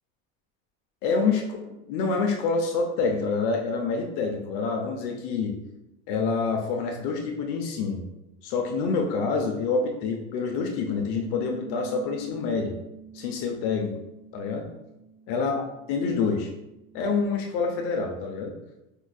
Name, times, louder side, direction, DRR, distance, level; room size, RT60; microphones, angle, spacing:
voice 1, 1.0-5.5 6.1-8.0 8.4-12.8 13.1-13.9 14.3-14.6 15.3-16.5 16.9-18.5, left 4 dB, 65° left, 2 dB, 0.5 m, -27 dB
Bass guitar, 11.0-17.3, right 6 dB, 55° right, 0.9 m, -46 dB
4.5 x 2.4 x 2.2 m, 0.94 s
supercardioid pair, 130°, 31 cm